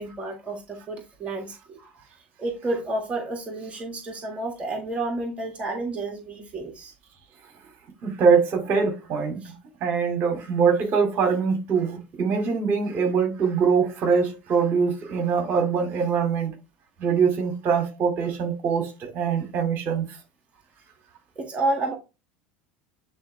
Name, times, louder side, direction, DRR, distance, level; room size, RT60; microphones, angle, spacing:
voice 1, 0.0-1.8 2.1-6.9 9.4-9.5 21.4-21.9, right 2 dB, 30° right, 1.8 m, -30 dB
voice 2, 8.0-16.5 17.0-20.0, right 6 dB, 45° right, 2.3 m, -23 dB
9.4 x 3.7 x 3.3 m
hypercardioid pair, 80°, 5 cm